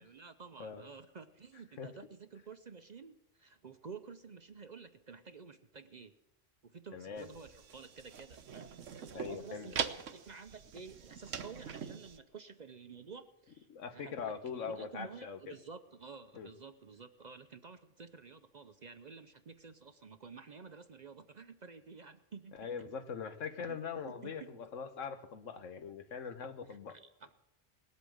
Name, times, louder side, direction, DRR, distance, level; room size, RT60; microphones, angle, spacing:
voice 1, 0.0-6.1 6.6-8.7 9.0-9.8 10.1-22.7 23.6-23.8 24.0-24.6 26.9-27.3, right 5 dB, 45° right, 0.6 m, -51 dB
voice 2, 6.9-7.3 9.1-9.7 13.7-15.6 16.3-16.5 22.6-27.0, left 6 dB, 90° left, 1.4 m, -42 dB
sound 1, 7.2-12.2, right 7 dB, 85° right, 1.3 m, -43 dB
19.0 x 8.2 x 7.8 m
omnidirectional pair, 1.3 m